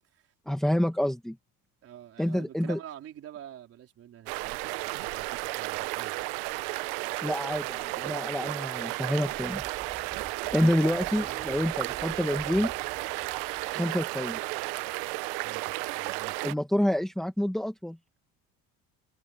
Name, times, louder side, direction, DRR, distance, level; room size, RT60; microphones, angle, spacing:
voice 1, 0.5-1.4 2.2-2.8 7.2-9.6 10.5-12.7 13.7-14.4 16.4-18.0, equal, ahead, 1.5 m, -28 dB
voice 2, 1.8-6.1 15.4-16.5, right 11 dB, 35° right, 4.4 m, -47 dB
sound 1, 4.3-16.5, right 22 dB, 75° right, 0.9 m, -33 dB
Motorcycle, 9.2-13.7, right 6 dB, 20° right, 2.9 m, -48 dB
cardioid pair, 170°, 39 cm